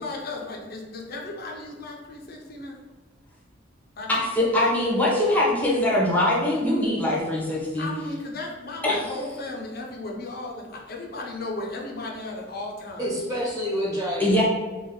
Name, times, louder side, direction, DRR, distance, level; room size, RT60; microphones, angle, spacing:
voice 1, 0.0-2.8 4.0-4.1 7.8-13.1, left 2 dB, 55° left, 0 dB, 0.7 m, -35 dB
voice 2, 4.1-7.9 8.8-9.0 14.2-14.4, left 1 dB, 10° left, -5 dB, 0.9 m, -22 dB
voice 3, 13.0-14.4, equal, 20° right, -7 dB, 1.4 m, -28 dB
3.4 x 2.4 x 3.7 m, 1.3 s
head